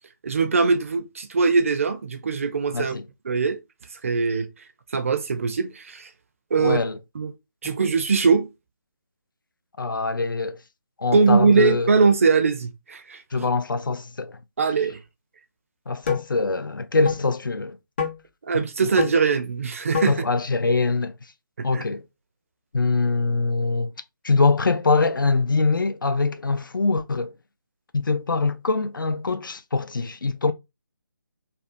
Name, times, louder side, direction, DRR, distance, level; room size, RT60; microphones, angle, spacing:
voice 1, 0.2-2.9 3.2-3.6 4.0-4.5 4.9-6.1 6.5-6.8 7.1-7.3 7.6-8.5 11.1-13.5 14.6-15.0 18.4-20.3 21.6-21.8, right 4 dB, 40° right, 0.4 m, -21 dB
voice 2, 2.7-3.0 6.6-7.0 9.8-10.6 11.0-11.9 13.3-14.4 15.9-17.8 20.1-21.1 21.6-22.0 22.7-23.9 24.2-27.3 27.9-30.5, left 3 dB, 75° left, 0.4 m, -23 dB
sound 1, 16.0-16.3 17.0-17.2 18.0-18.2 19.0-19.1 19.9-20.2, left 7 dB, 35° left, 0.7 m, -26 dB
2.5 x 2.2 x 2.5 m
figure-of-eight pair, 150°, 11 cm